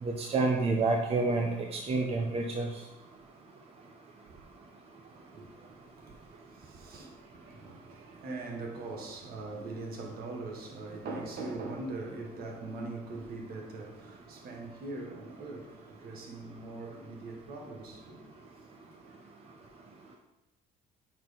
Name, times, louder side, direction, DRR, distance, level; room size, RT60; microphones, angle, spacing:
voice 1, 0.0-2.8, right 3 dB, 35° right, 0.8 m, -29 dB
voice 2, 5.1-18.4 19.1-19.4, right 2 dB, 65° right, 1.6 m, -42 dB
6.2 x 4.4 x 5.1 m
cardioid pair, 110°, 17 cm